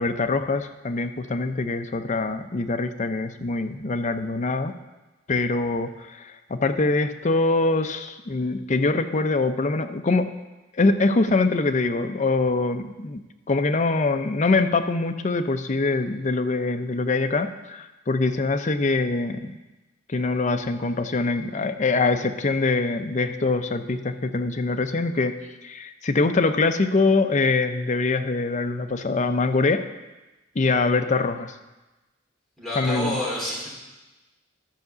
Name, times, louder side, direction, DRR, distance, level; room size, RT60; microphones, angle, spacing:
voice 1, 0.0-4.7 5.3-10.3 10.7-13.2 13.5-19.6 20.1-25.4 25.6-29.8 30.6-31.5 32.8-33.2, left 3 dB, 35° left, 7 dB, 0.5 m, -24 dB
voice 2, 32.6-33.7, left 1 dB, ahead, -7 dB, 3.2 m, -29 dB
12.0 x 4.7 x 6.7 m, 1.1 s
head